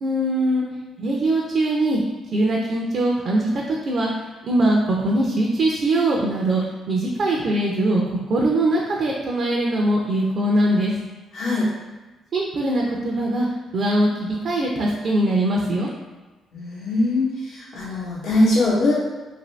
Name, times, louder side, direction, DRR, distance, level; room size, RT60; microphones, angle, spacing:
voice 1, 0.0-0.6 1.0-2.0 2.3-4.1 4.4-10.9 12.3-13.5 13.7-15.9, right 1 dB, 60° right, -2 dB, 0.5 m, -21 dB
voice 2, 11.3-11.7 16.5-18.9, left 2 dB, 70° left, -7 dB, 0.8 m, -21 dB
2.6 x 2.6 x 3.1 m, 1.2 s
cardioid pair, 90°, 0 cm